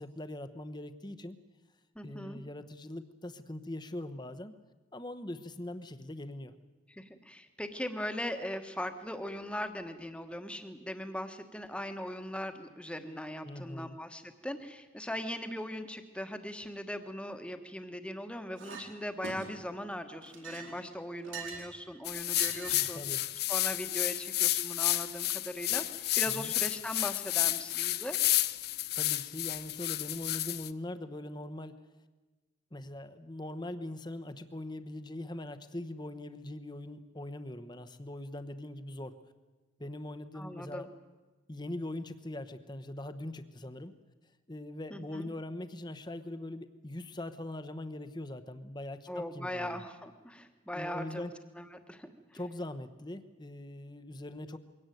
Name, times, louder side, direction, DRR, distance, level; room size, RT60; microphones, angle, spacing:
voice 1, 0.0-1.4 2.0-4.5 4.9-6.5 13.4-14.0 22.7-23.2 26.3-26.5 28.9-31.8 32.7-39.2 39.8-40.9 41.5-44.0 44.5-49.8 50.7-51.3 52.3-54.6, left 1 dB, 20° left, 10 dB, 1.0 m, -41 dB
voice 2, 1.9-2.4 6.9-28.2 40.3-40.9 44.9-45.3 49.1-51.3 51.6-52.4, equal, 5° left, 7 dB, 1.3 m, -40 dB
Chink clink, 18.6-18.9 19.2-19.7 20.2-21.7 22.3-23.0, right 5 dB, 75° right, 4.5 m, -43 dB
sound 1, 22.0-30.7, left 16 dB, 50° left, 0.6 m, -31 dB
22.5 x 17.5 x 9.2 m, 1.2 s
head